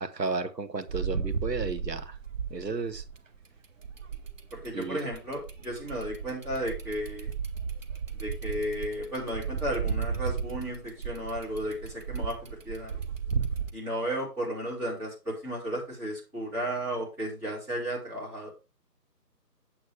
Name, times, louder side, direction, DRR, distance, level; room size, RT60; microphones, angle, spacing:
voice 1, 0.0-2.1 2.5-3.0 4.7-5.0, right 3 dB, 85° right, 1.5 m, -33 dB
sound 1, 0.9-3.4 3.8-13.7, right 6 dB, 50° right, 1.1 m, -34 dB
voice 2, 4.5-7.3 8.2-13.0 13.7-18.5, equal, 5° right, 2.9 m, -34 dB
8.7 x 8.0 x 3.4 m
figure-of-eight pair, 160°, 48 cm